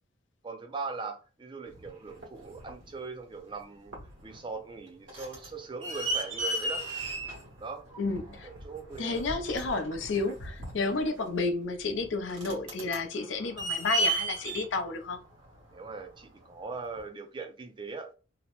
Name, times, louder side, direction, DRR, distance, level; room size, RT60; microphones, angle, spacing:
voice 1, 0.4-4.0 4.2-6.8 7.6-7.9 8.4-9.2 15.7-18.1, right 4 dB, 25° right, 0.4 m, -40 dB
sound 1, 1.7-2.9 3.5-3.6 3.9-4.4 4.7-16.2 17.0-17.1, right 2 dB, 90° right, 1.2 m, -35 dB
voice 2, 8.0-8.5 9.0-15.2, left 3 dB, 75° left, 0.5 m, -31 dB
2.8 x 2.0 x 2.9 m
head